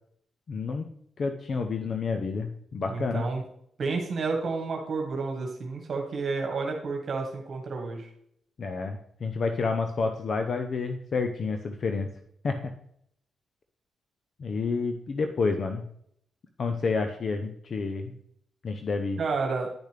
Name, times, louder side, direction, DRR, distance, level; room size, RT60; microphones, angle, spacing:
voice 1, 0.5-0.9 1.2-3.2 8.6-12.1 12.4-12.7 14.4-15.8 16.6-18.1 18.6-19.2, left 4 dB, 55° left, 6 dB, 0.8 m, -29 dB
voice 2, 2.8-3.4 3.8-8.1 19.2-19.7, right 4 dB, 55° right, 2 dB, 1.6 m, -30 dB
10.0 x 6.5 x 3.4 m, 0.68 s
cardioid pair, 85°, 0 cm